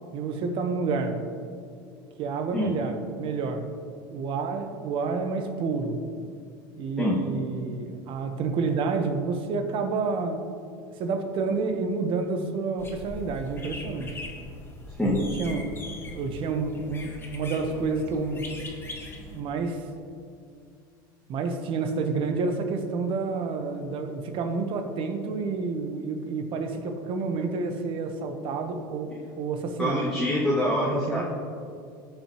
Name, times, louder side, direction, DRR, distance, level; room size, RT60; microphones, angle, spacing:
voice 1, 0.1-1.2 2.2-3.6 4.1-6.0 6.7-10.5 11.0-14.2 15.1-15.7 16.0-18.4 19.3-19.9 21.3-30.1 30.9-31.2, right 4 dB, 50° right, 6 dB, 1.1 m, -29 dB
sound 1, 12.8-19.4, left 2 dB, 20° left, 1.9 m, -41 dB
voice 2, 29.8-31.2, left 1 dB, 5° left, -7 dB, 1.8 m, -25 dB
16.0 x 5.6 x 3.0 m, 2.4 s
hypercardioid pair, 95°, 11 cm